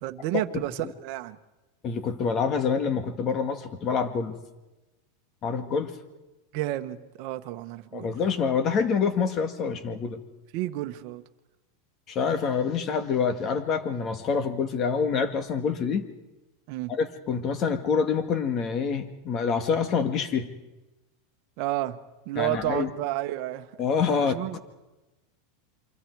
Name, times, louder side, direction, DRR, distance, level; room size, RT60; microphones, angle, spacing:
voice 1, 0.0-1.4 6.5-8.1 10.5-11.2 16.7-16.9 21.6-23.7 24.2-24.6, right 15 dB, 55° right, 7 dB, 1.2 m, -31 dB
voice 2, 1.8-4.3 5.4-5.9 7.9-10.2 12.1-16.1 16.9-20.5 22.4-22.9 23.8-24.6, left 6 dB, 35° left, 8 dB, 2.0 m, -26 dB
28.0 x 24.0 x 4.8 m, 1.1 s
supercardioid pair, 140°, 0 cm